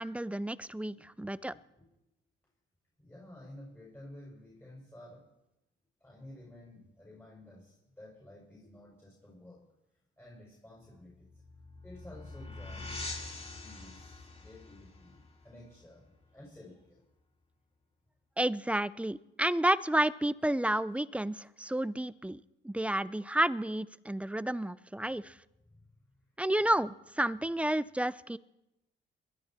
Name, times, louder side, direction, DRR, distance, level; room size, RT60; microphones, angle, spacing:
voice 1, 0.0-1.5 18.4-25.3 26.4-28.4, right 1 dB, 5° right, 18 dB, 0.5 m, -31 dB
voice 2, 1.5-1.9 3.0-5.2 6.0-9.7 10.2-11.3 11.8-13.1 13.6-17.0 25.6-25.9, left 1 dB, 10° left, -4 dB, 6.2 m, -52 dB
sound 1, 11.0-16.4, left 2 dB, 30° left, 4.8 m, -45 dB
21.5 x 12.5 x 4.4 m, 0.92 s
cardioid pair, 90°, 20 cm